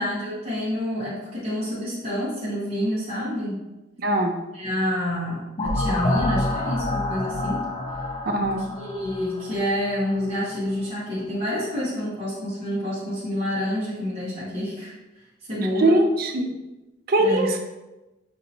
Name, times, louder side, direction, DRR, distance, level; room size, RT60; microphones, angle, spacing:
voice 1, 0.0-3.6 4.5-7.6 8.8-14.9 15.5-16.0 17.2-17.5, left 1 dB, 35° right, -9 dB, 1.1 m, -28 dB
voice 2, 4.0-4.3 8.3-8.6 15.8-16.5 17.1-17.6, right 1 dB, 50° right, 4 dB, 0.5 m, -21 dB
sound 1, 5.6-10.3, left 1 dB, 25° left, 0.4 m, -28 dB
5.3 x 2.7 x 2.8 m, 1.0 s
head